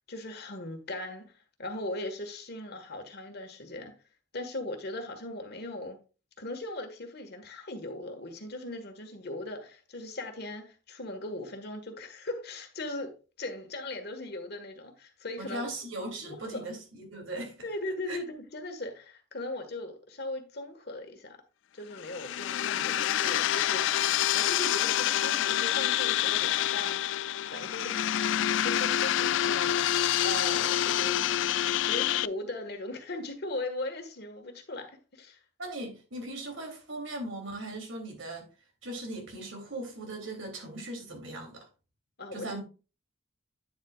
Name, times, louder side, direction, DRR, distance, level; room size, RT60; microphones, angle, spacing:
voice 1, 0.1-1.3 1.6-3.9 4.3-6.0 6.4-13.1 13.4-15.6 16.2-16.6 17.6-21.4 21.7-23.8 24.3-27.0 27.5-28.0 28.6-29.8 30.2-31.2 31.9-35.4 42.2-42.6, left 2 dB, 55° left, 1.7 m, -38 dB
voice 2, 15.4-17.7 18.1-18.2 35.6-38.5 38.8-41.7 42.3-42.6, right 1 dB, 90° right, 3.1 m, -39 dB
sound 1, 22.0-32.3, left 11 dB, 70° left, 0.3 m, -27 dB
9.4 x 7.5 x 2.4 m
head